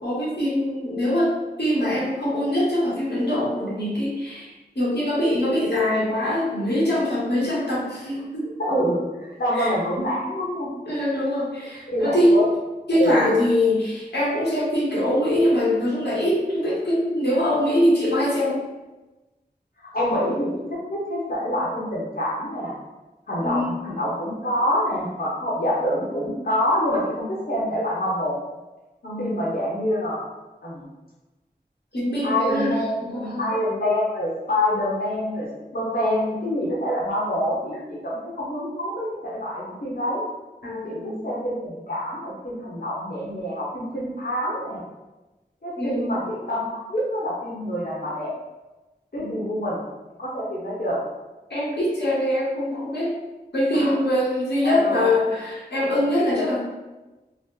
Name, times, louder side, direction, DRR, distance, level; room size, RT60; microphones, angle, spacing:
voice 1, 0.0-8.5 9.5-9.7 10.9-12.4 12.9-18.6 23.4-23.8 29.0-29.3 31.9-33.5 40.6-41.2 45.8-46.1 49.2-49.5 51.5-53.1 53.5-56.6, left 1 dB, 85° left, -7 dB, 1.0 m, -23 dB
voice 2, 8.6-10.7 11.9-12.4 12.9-13.4 19.9-20.6 20.9-22.8 23.3-28.4 29.2-30.2 30.6-30.9 32.2-35.5 35.7-40.2 40.8-44.8 45.6-48.3 49.1-49.8 50.2-51.0 53.7-53.9 54.6-55.1, equal, 60° left, -7 dB, 0.8 m, -26 dB
2.9 x 2.0 x 3.5 m, 1.1 s
wide cardioid pair, 40°, 17 cm